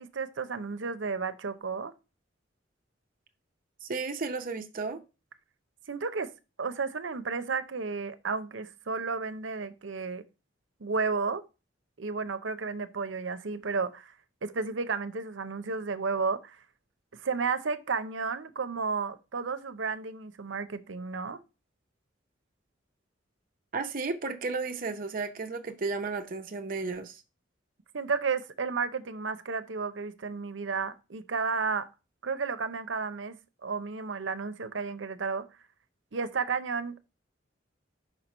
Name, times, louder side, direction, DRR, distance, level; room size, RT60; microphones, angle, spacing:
voice 1, 0.0-1.9 5.9-6.3 6.6-10.2 10.8-11.4 12.0-14.1 14.4-16.6 17.1-21.4 27.9-31.9 32.2-33.4 33.6-35.5 36.1-37.0, right 4 dB, 80° right, 0.7 m, -32 dB
voice 2, 3.8-5.0 23.7-27.2, right 4 dB, 45° right, 0.6 m, -33 dB
5.6 x 4.5 x 5.3 m
head